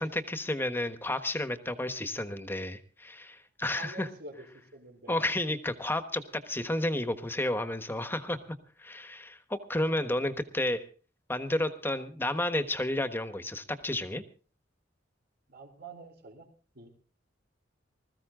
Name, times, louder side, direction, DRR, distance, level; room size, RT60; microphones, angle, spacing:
voice 1, 0.0-4.1 5.1-8.4 8.8-10.8 11.3-14.2, left 1 dB, 10° left, 10 dB, 1.2 m, -31 dB
voice 2, 3.7-5.2 15.5-16.5 16.7-16.9, right 3 dB, 60° right, 4 dB, 4.0 m, -47 dB
20.5 x 14.5 x 3.8 m, 0.38 s
head